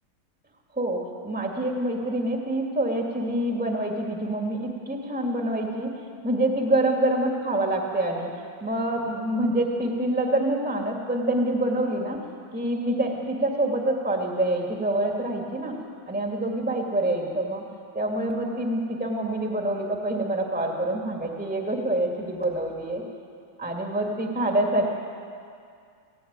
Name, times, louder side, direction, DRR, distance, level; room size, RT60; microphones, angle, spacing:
voice 1, 0.7-5.9 6.2-8.3 8.6-12.2 12.5-15.8 16.1-17.6 17.9-23.0 23.6-24.9, right 1 dB, 5° right, 0 dB, 2.2 m, -26 dB
18.0 x 16.5 x 9.6 m, 2.3 s
omnidirectional pair, 2.1 m